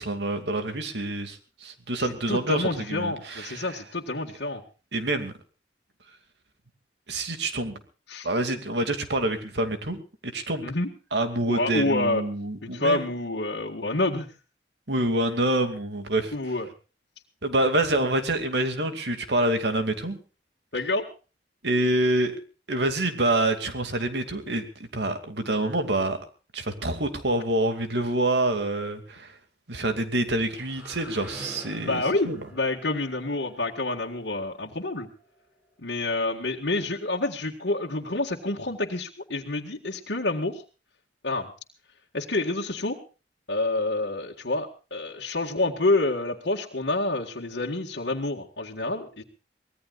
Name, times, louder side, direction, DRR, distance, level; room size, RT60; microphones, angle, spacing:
voice 1, 0.0-3.8 4.9-5.3 7.1-7.8 8.2-10.0 10.3-10.6 11.1-13.1 14.9-16.3 17.4-20.2 21.6-22.4 22.7-26.2 26.5-29.4 29.7-32.4, right 1 dB, 80° right, 7 dB, 2.5 m, -27 dB
voice 2, 2.3-4.6 8.1-8.3 10.6-10.9 11.5-12.2 12.6-14.3 16.3-16.7 20.7-21.1 31.8-35.1 35.8-40.6 41.2-41.5 42.1-43.0 43.5-49.2, left 2 dB, 80° left, -3 dB, 1.8 m, -28 dB
sound 1, 30.2-35.8, equal, 10° right, 5.0 m, -47 dB
24.5 x 18.5 x 2.5 m, 0.35 s
head